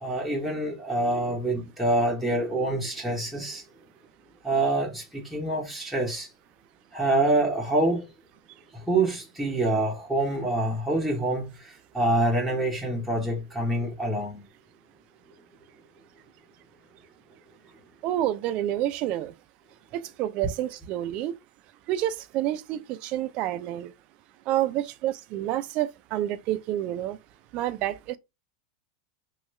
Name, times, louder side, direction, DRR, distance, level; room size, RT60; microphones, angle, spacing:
voice 1, 0.0-3.6 4.4-6.3 6.9-8.0 8.7-14.4, right 2 dB, ahead, 0.8 m, -26 dB
voice 2, 18.0-19.3 19.9-21.3 21.9-23.9 24.5-27.2 27.5-28.2, right 13 dB, 45° right, 0.4 m, -28 dB
2.9 x 2.3 x 3.1 m
supercardioid pair, 125°, 2 cm